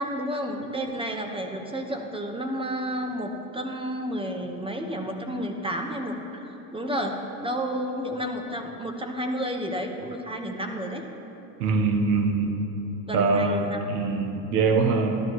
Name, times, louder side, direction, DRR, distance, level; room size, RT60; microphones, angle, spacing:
voice 1, 0.0-11.0 13.1-13.9, equal, 10° right, 3 dB, 1.3 m, -31 dB
voice 2, 11.6-12.5 13.1-15.1, right 4 dB, 80° right, 4 dB, 1.3 m, -23 dB
13.5 x 12.0 x 3.2 m, 2.9 s
hypercardioid pair, 80°, 47 cm